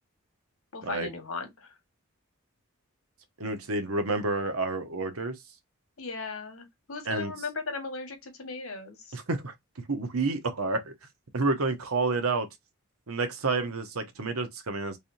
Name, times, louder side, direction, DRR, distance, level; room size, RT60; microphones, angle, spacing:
voice 1, 0.7-1.7 6.0-9.1, left 4 dB, 75° left, 1.3 m, -37 dB
voice 2, 3.4-5.4 7.0-7.3 9.1-9.5 9.9-10.9 11.3-12.5 13.1-15.0, right 3 dB, 80° right, 1.0 m, -29 dB
4.2 x 3.4 x 2.6 m
head